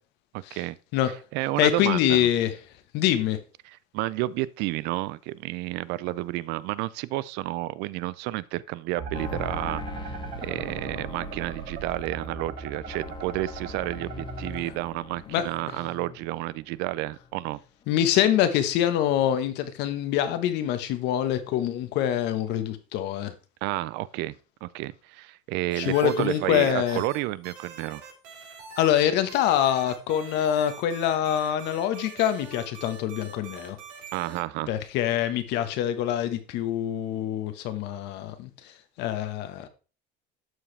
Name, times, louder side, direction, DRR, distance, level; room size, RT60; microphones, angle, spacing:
voice 1, 0.3-0.8 1.3-2.3 3.6-17.6 23.6-24.3 24.6-28.1 34.1-34.7, right 17 dB, 60° right, 0.4 m, -31 dB
voice 2, 1.6-2.5 2.9-3.4 15.3-15.4 17.9-23.3 25.8-27.0 28.8-33.8 34.7-38.5 39.0-39.7, left 11 dB, 60° left, 1.2 m, -25 dB
sound 1, 9.0-14.6, right 6 dB, 40° right, 1.2 m, -38 dB
sound 2, 9.1-16.6 16.9-17.6 17.8-17.9, left 5 dB, 25° left, 1.0 m, -41 dB
sound 3, 25.7-27.2 27.4-29.0 29.3-34.4, right 6 dB, 90° right, 3.9 m, -44 dB
12.5 x 4.8 x 3.3 m
cardioid pair, 140°, 20 cm